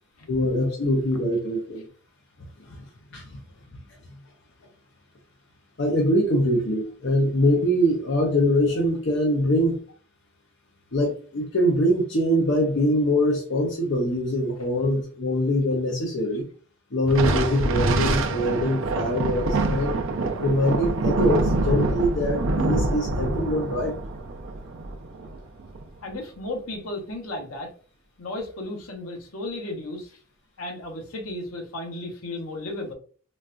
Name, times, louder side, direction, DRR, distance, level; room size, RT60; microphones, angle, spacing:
voice 1, 0.3-1.8 2.7-2.8 3.1-3.4 5.8-9.8 10.9-16.5 16.9-20.0 20.4-23.9, equal, 60° left, 0 dB, 0.7 m, -23 dB
Thunder, 17.1-25.8, right 2 dB, 65° right, 0.5 m, -25 dB
voice 2, 26.0-27.7 28.2-30.2 30.6-32.9, left 2 dB, 85° left, 3 dB, 1.0 m, -34 dB
4.1 x 2.3 x 2.4 m, 0.41 s
head